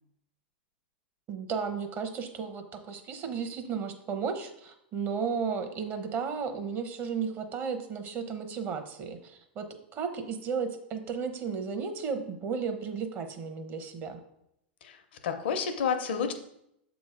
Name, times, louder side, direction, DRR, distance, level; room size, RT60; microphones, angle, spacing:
voice 1, 1.3-14.2, right 6 dB, 35° right, 7 dB, 1.0 m, -34 dB
voice 2, 14.8-16.3, left 6 dB, 75° left, 7 dB, 0.9 m, -30 dB
7.1 x 3.1 x 4.9 m, 0.78 s
hypercardioid pair, 110°, 6 cm